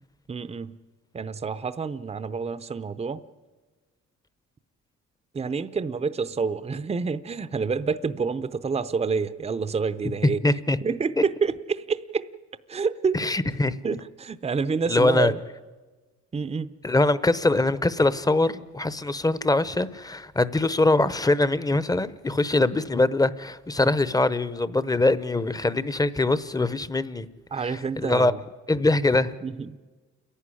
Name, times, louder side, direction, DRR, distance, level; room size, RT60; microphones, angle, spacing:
voice 1, 0.3-0.8 1.1-3.2 5.3-10.4 10.8-12.3 12.7-13.2 13.8-15.4 16.3-16.7 27.5-28.4 29.4-29.8, right 5 dB, 20° right, 0.7 m, -28 dB
voice 2, 10.2-10.8 13.1-13.8 14.9-15.3 16.8-27.3 27.6-28.3 28.7-29.3, left 2 dB, 10° left, 0.8 m, -23 dB
29.0 x 11.5 x 9.9 m
cardioid pair, 90°, 30 cm